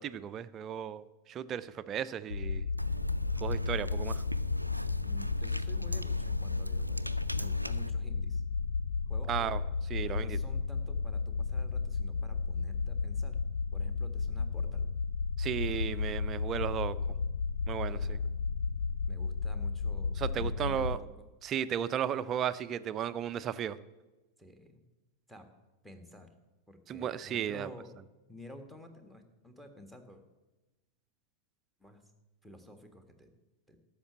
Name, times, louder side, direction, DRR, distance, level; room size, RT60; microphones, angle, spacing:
voice 1, 0.0-2.7 3.4-4.2 9.3-9.6 9.9-10.4 15.4-17.0 17.7-18.2 20.2-21.0 21.4-23.8 26.9-27.7, right 9 dB, 30° right, 15 dB, 0.5 m, -34 dB
sound 1, 2.3-21.0, left 4 dB, 70° left, 0.4 m, -33 dB
sound 2, 2.8-7.9, right 1 dB, 90° right, 0.4 m, -38 dB
voice 2, 5.0-8.4 9.1-9.6 10.1-13.4 13.7-14.9 17.8-18.4 19.1-21.3 24.4-24.8 25.3-25.5 25.8-26.3 26.7-28.0 28.3-30.2 31.8-32.0 32.4-33.3 33.7-33.8, left 1 dB, ahead, 6 dB, 1.6 m, -51 dB
12.5 x 6.7 x 8.5 m, 1.1 s
figure-of-eight pair, 90°, 0 cm